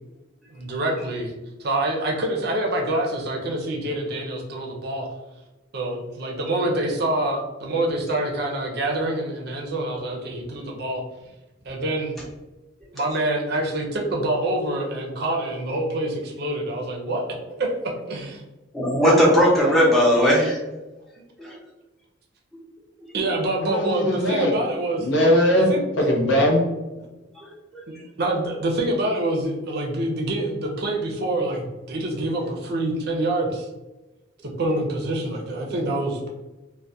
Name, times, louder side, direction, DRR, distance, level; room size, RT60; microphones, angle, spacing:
voice 1, 0.5-1.3 1.6-5.1 5.7-11.0 11.7-12.1 12.9-18.4 23.1-25.1 25.6-25.8 28.2-33.7 34.4-36.3, right 1 dB, 55° right, 0 dB, 0.5 m, -26 dB
voice 2, 18.7-20.6 27.7-27.8, equal, ahead, -6 dB, 0.6 m, -17 dB
voice 3, 23.6-24.5 25.0-25.7 26.0-26.6, equal, 70° left, 0 dB, 0.6 m, -20 dB
2.3 x 2.1 x 2.6 m, 1.1 s
head